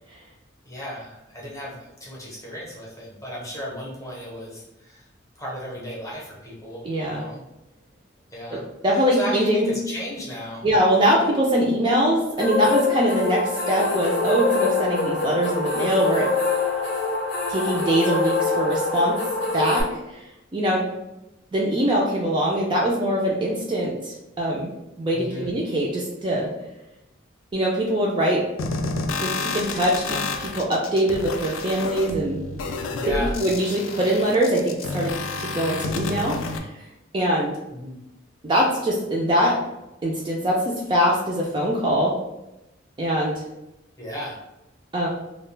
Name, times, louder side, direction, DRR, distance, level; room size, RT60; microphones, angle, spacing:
voice 1, 0.6-5.0 5.4-7.4 8.3-8.6 8.9-10.7 25.1-25.5 32.9-33.4 37.7-38.0 44.0-44.4, equal, 15° left, -5 dB, 0.7 m, -35 dB
voice 2, 6.8-7.3 8.5-9.7 10.6-16.3 17.5-19.2 19.5-20.2 20.5-20.8 21.5-24.7 25.0-26.5 27.5-28.4 29.2-32.4 33.1-35.1 35.4-36.7 37.1-37.5 38.4-39.6 40.0-42.2 43.0-43.4 44.9-45.1, equal, 25° right, -3 dB, 0.3 m, -22 dB
sound 1, 12.4-19.8, left 3 dB, 60° left, 0.6 m, -25 dB
sound 2, 28.6-36.6, left 3 dB, 90° left, 0.3 m, -30 dB
2.3 x 2.1 x 3.1 m, 0.94 s
head